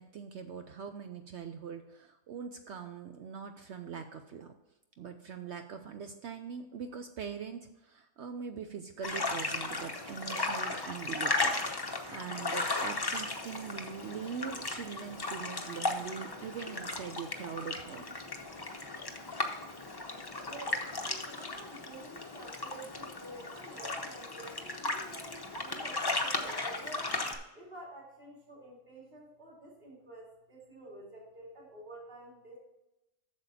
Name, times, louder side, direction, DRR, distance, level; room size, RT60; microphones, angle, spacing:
voice 1, 0.0-4.5 5.0-18.2, right 7 dB, 65° right, 7 dB, 0.8 m, -42 dB
sound 1, 9.0-27.4, left 2 dB, 25° left, 0.6 m, -36 dB
voice 2, 20.4-27.1 27.5-32.6, right 1 dB, 30° right, -5 dB, 2.8 m, -49 dB
8.2 x 6.8 x 4.2 m, 0.95 s
omnidirectional pair, 1.5 m